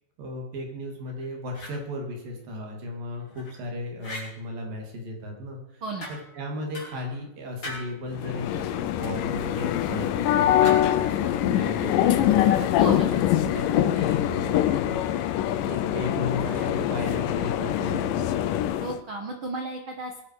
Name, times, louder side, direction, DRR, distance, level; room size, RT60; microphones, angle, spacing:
voice 1, 0.2-5.8 6.1-12.7 13.4-15.1 15.7-18.4, left 1 dB, 55° right, 1 dB, 4.2 m, -35 dB
sound 1, 1.1-1.8 3.1-3.6 4.0-4.3 6.0-6.4 6.7-7.2 7.6-8.0 10.6-11.1, left 2 dB, 25° left, 5.3 m, -39 dB
sound 2, 8.2-19.0, left 12 dB, 85° left, 1.9 m, -24 dB
voice 2, 12.8-13.1 18.8-20.2, right 2 dB, 75° right, 3 dB, 1.1 m, -33 dB
22.0 x 10.5 x 4.9 m, 0.78 s
omnidirectional pair, 4.9 m